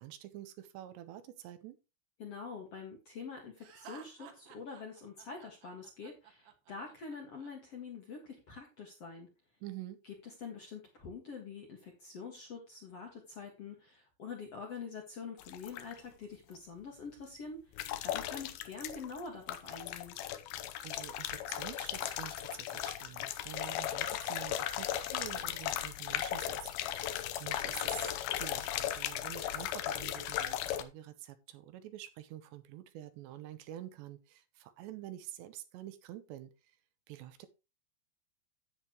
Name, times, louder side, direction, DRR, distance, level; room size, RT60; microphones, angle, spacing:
voice 1, 0.0-1.8 9.6-10.0 20.6-36.8 37.1-37.5, right 13 dB, 80° right, 3.1 m, -48 dB
voice 2, 2.2-9.3 10.4-17.6 18.0-20.2, left 5 dB, 50° left, 1.9 m, -46 dB
Laughter, 3.6-7.5, right 7 dB, 65° right, 2.8 m, -54 dB
sound 1, 15.4-16.0 17.8-19.2 19.5-30.8, left 12 dB, 80° left, 2.3 m, -37 dB
10.5 x 8.9 x 3.0 m
omnidirectional pair, 5.1 m